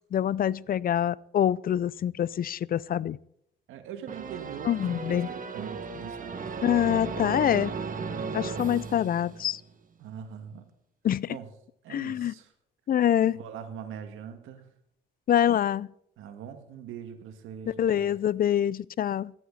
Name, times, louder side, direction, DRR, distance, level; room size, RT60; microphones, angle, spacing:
voice 1, 0.1-3.2 4.6-5.3 6.6-7.7 8.3-9.6 11.0-11.4 11.9-12.3 12.9-13.4 15.3-15.9 17.7-19.3, left 10 dB, 45° left, 0.5 m, -25 dB
voice 2, 3.7-6.5 10.0-10.7 11.3-11.5 11.8-12.5 13.4-14.7 16.2-18.1, right 8 dB, 90° right, 2.0 m, -42 dB
sound 1, 4.1-9.7, right 5 dB, 45° right, 1.8 m, -35 dB
17.5 x 12.5 x 4.2 m
cardioid pair, 90°, 20 cm